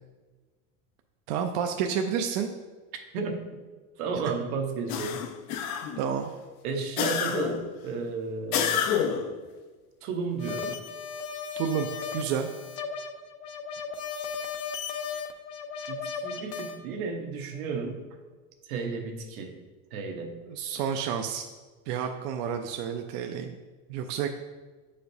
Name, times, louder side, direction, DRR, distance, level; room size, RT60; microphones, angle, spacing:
voice 1, 1.3-2.5 6.0-6.3 11.6-12.5 20.5-21.5 21.9-23.5 23.9-24.3, right 7 dB, 55° right, 4 dB, 0.5 m, -30 dB
voice 2, 4.0-5.3 6.6-8.9 10.0-10.8 15.9-18.1 18.6-19.5 19.9-20.4, right 4 dB, 75° right, 3 dB, 1.1 m, -33 dB
sound 1, 4.9-6.1 7.0-7.7 8.5-9.3, left 8 dB, 80° left, 0.7 m, -28 dB
sound 2, 10.4-16.8, left 6 dB, 45° left, 0.5 m, -36 dB
7.7 x 5.0 x 2.7 m, 1.3 s
supercardioid pair, 155°, 43 cm